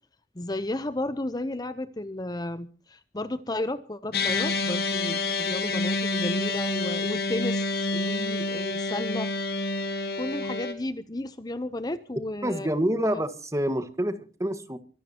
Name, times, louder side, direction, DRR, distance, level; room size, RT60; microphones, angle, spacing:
voice 1, 0.3-9.3 10.2-13.2, left 1 dB, 25° left, 13 dB, 0.7 m, -33 dB
sound 1, 4.1-10.7, left 3 dB, 60° left, 2.4 m, -28 dB
voice 2, 12.4-14.8, right 1 dB, 20° right, 10 dB, 1.6 m, -27 dB
24.5 x 15.5 x 2.9 m, 0.39 s
head